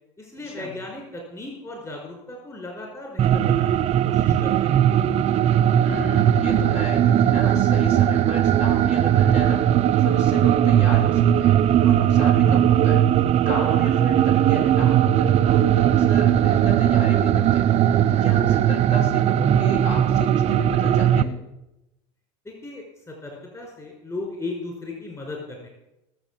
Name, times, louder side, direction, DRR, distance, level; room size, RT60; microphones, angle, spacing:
voice 1, 0.2-5.1 22.4-25.7, left 2 dB, 20° left, 0 dB, 5.0 m, -36 dB
sound 1, 3.2-21.2, right 10 dB, 40° right, 0.7 m, -19 dB
voice 2, 5.8-9.6 9.9-11.6 11.8-13.1 13.4-17.7 18.1-21.3, left 1 dB, 45° left, 0 dB, 5.9 m, -33 dB
19.0 x 7.7 x 7.6 m, 0.92 s
supercardioid pair, 100°, 16 cm